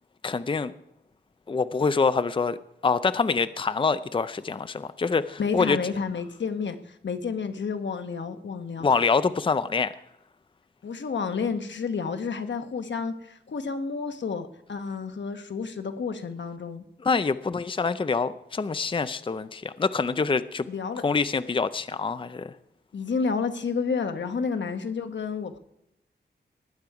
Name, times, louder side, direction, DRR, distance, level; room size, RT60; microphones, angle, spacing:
voice 1, 0.2-0.7 1.5-2.6 2.8-5.8 8.8-9.9 17.0-20.7 21.0-22.5, left 4 dB, 30° left, 13 dB, 0.5 m, -25 dB
voice 2, 5.4-8.9 10.8-16.8 20.7-21.0 22.9-25.6, left 5 dB, 85° left, 8 dB, 1.1 m, -30 dB
19.5 x 9.3 x 4.8 m, 0.80 s
wide cardioid pair, 85°, 18 cm